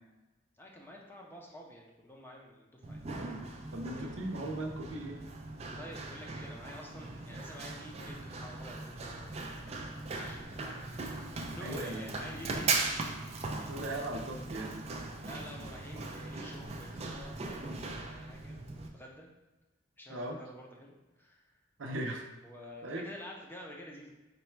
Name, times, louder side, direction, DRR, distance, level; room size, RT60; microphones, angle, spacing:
voice 1, 0.6-3.0 5.6-13.4 15.2-19.3 20.0-21.6 22.4-24.1, equal, 10° left, -1 dB, 0.6 m, -49 dB
Run, 2.8-18.9, right 3 dB, 35° right, 0.4 m, -39 dB
voice 2, 3.7-5.2 11.6-12.1 13.5-14.9 20.1-20.4 21.8-22.2 22.8-23.1, right 1 dB, 80° right, 2 dB, 0.6 m, -38 dB
4.0 x 2.2 x 4.4 m, 1.1 s
head